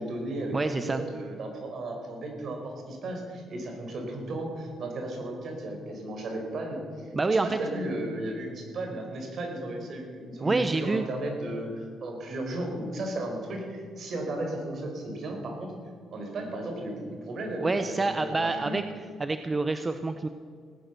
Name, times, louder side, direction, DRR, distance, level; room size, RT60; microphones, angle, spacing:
voice 1, 0.0-15.7 16.1-17.7 18.0-18.8, right 1 dB, 60° right, 2 dB, 4.7 m, -35 dB
voice 2, 0.5-1.0 7.1-7.6 10.4-11.1 17.6-18.8 19.2-20.3, right 3 dB, 25° right, 9 dB, 0.7 m, -27 dB
18.0 x 10.5 x 6.8 m, 2.1 s
cardioid pair, 90°, 0 cm